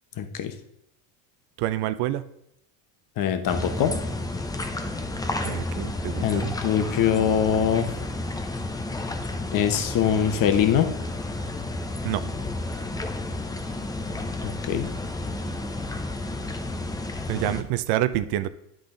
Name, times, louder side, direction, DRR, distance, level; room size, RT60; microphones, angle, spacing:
voice 1, 0.2-0.5 3.2-4.0 6.2-7.9 9.5-10.9 14.4-14.9, left 8 dB, 45° left, 8 dB, 1.0 m, -23 dB
voice 2, 1.6-2.2 5.4-6.5 12.0-12.2 17.3-18.5, right 14 dB, 60° right, 12 dB, 0.6 m, -27 dB
sound 1, 3.5-17.6, left 2 dB, 10° left, 0.5 m, -31 dB
10.0 x 3.9 x 3.8 m, 0.78 s
supercardioid pair, 110°, 45 cm